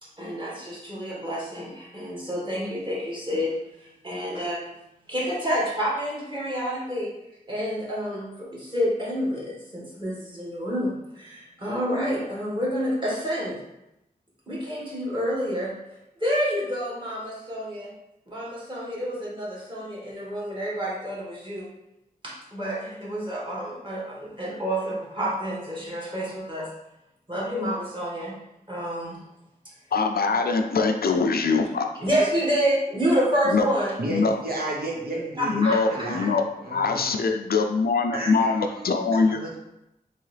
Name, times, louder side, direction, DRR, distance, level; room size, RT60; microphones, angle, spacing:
voice 1, 0.0-4.6 5.1-7.1 7.5-13.6 14.5-15.7 16.2-17.9 18.3-21.7 22.2-26.7 27.3-28.3 28.7-29.2 32.0-33.9 35.4-36.3, equal, 30° right, -5 dB, 1.5 m, -28 dB
voice 2, 29.9-31.9 33.5-33.6 34.1-34.4 35.5-36.4 36.7-39.4, left 4 dB, 75° left, 5 dB, 0.4 m, -23 dB
voice 3, 34.0-35.6 35.9-36.3 36.6-37.2 38.1-39.6, right 1 dB, 75° right, -2 dB, 0.8 m, -32 dB
3.7 x 3.0 x 3.2 m, 0.88 s
wide cardioid pair, 70°, 16 cm